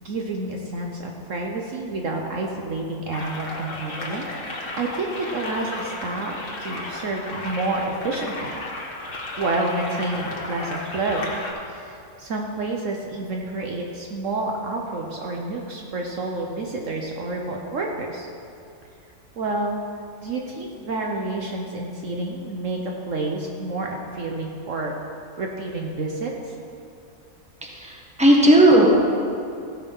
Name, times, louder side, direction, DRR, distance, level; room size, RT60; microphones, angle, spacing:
voice 1, 0.0-4.2 4.7-8.5 9.4-11.3 11.7-18.3 19.4-19.8 20.2-24.9 25.4-26.6, right 2 dB, 60° right, 1 dB, 1.2 m, -29 dB
sound 1, 3.1-11.5, left 2 dB, 35° left, 1.7 m, -33 dB
voice 2, 27.6-28.9, right 1 dB, 5° right, -3 dB, 1.5 m, -15 dB
16.0 x 6.5 x 5.5 m, 2.6 s
omnidirectional pair, 1.6 m